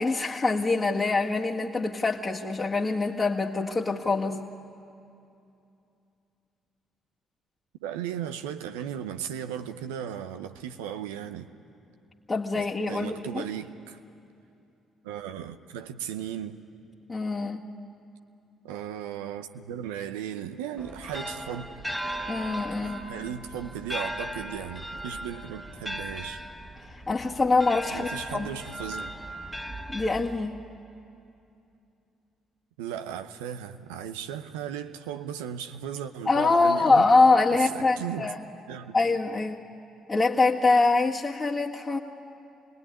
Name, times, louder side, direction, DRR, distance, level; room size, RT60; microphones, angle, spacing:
voice 1, 0.0-4.4 12.3-13.4 17.1-17.7 22.3-23.0 26.9-28.5 29.9-30.6 36.3-38.4 38.9-39.6 40.1-42.0, left 3 dB, 30° left, 1.9 m, -24 dB
voice 2, 7.8-11.5 12.6-14.0 15.0-16.6 18.6-21.7 22.8-26.4 27.9-29.1 32.8-37.1 37.6-38.3 38.7-38.9, right 9 dB, 80° right, 0.7 m, -36 dB
sound 1, 20.8-30.7, equal, 5° right, 1.7 m, -37 dB
27.0 x 19.5 x 9.9 m
hypercardioid pair, 50°, 0 cm